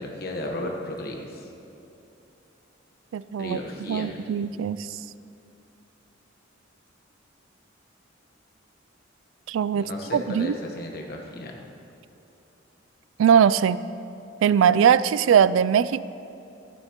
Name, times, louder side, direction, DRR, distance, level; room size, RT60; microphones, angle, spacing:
voice 1, 0.0-1.5 3.4-4.2 9.7-11.5, left 1 dB, 55° left, 1 dB, 1.2 m, -34 dB
voice 2, 3.1-3.6 3.9-4.9 9.5-9.8 10.1-10.5 13.2-13.8 14.4-16.0, right 8 dB, 85° right, 17 dB, 0.3 m, -20 dB
15.5 x 11.5 x 3.0 m, 2.9 s
head